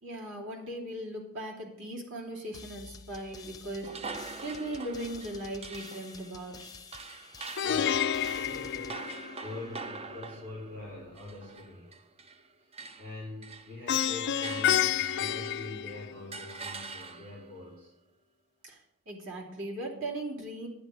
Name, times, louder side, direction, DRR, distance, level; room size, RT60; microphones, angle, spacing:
voice 1, 0.0-4.1 4.4-6.6 18.6-20.7, right 1 dB, 60° right, -2 dB, 3.0 m, -38 dB
sound 1, 2.5-10.0, left 4 dB, 20° left, 0.7 m, -50 dB
sound 2, 3.8-12.5 12.7-15.8 16.3-17.5, right 4 dB, 30° right, 0.6 m, -44 dB
Plucked string instrument, 7.6-9.7 13.9-16.5, left 9 dB, 55° left, 0.4 m, -29 dB
voice 2, 7.6-11.9 12.6-12.7 13.0-17.9, left 2 dB, 85° right, -7 dB, 4.0 m, -44 dB
11.5 x 10.0 x 5.0 m, 0.87 s
head